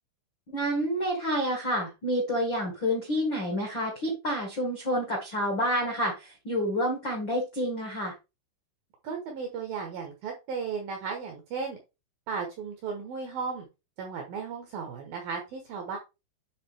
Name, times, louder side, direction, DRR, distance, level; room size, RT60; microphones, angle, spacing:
voice 1, 0.5-8.1, equal, 60° left, 0 dB, 1.2 m, -29 dB
voice 2, 9.0-11.8 12.3-13.7 14.0-16.0, right 5 dB, 70° right, 3 dB, 2.2 m, -35 dB
10.0 x 3.7 x 3.4 m, 0.26 s
omnidirectional pair, 5.7 m